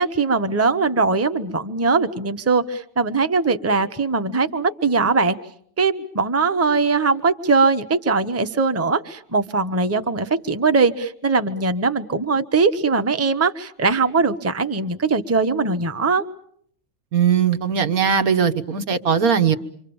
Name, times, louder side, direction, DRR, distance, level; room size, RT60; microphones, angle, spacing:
voice 1, 0.0-5.4 5.8-16.2, right 4 dB, 10° right, 10 dB, 0.9 m, -20 dB
voice 2, 17.1-19.6, right 7 dB, 75° right, 8 dB, 1.8 m, -19 dB
28.0 x 25.0 x 7.1 m, 0.65 s
omnidirectional pair, 1.5 m